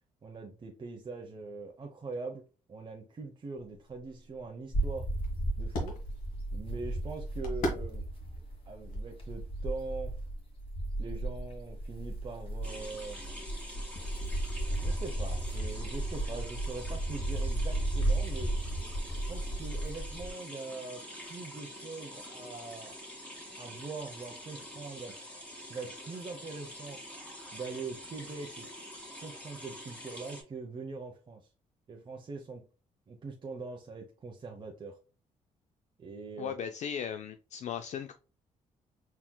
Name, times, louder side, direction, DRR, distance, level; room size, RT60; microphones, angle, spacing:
voice 1, 0.2-2.4 2.7-5.1 5.6-6.0 6.5-8.0 8.7-10.2 11.0-13.2 14.8-18.5 19.3-21.0 21.3-23.0 23.6-25.2 25.7-27.0 27.5-28.7 29.2-31.5 31.9-32.7 33.1-35.0 36.0-36.5, right 3 dB, 35° right, 0.7 m, -42 dB
sound 1, 3.6-9.9, equal, 80° left, 1.6 m, -42 dB
sound 2, 4.7-20.3, right 1 dB, 40° left, 1.7 m, -34 dB
sound 3, 12.6-30.4, equal, 10° left, 2.0 m, -46 dB
voice 2, 36.4-38.1, left 8 dB, 55° left, 0.4 m, -37 dB
4.3 x 3.6 x 2.2 m
cardioid pair, 90°, 14 cm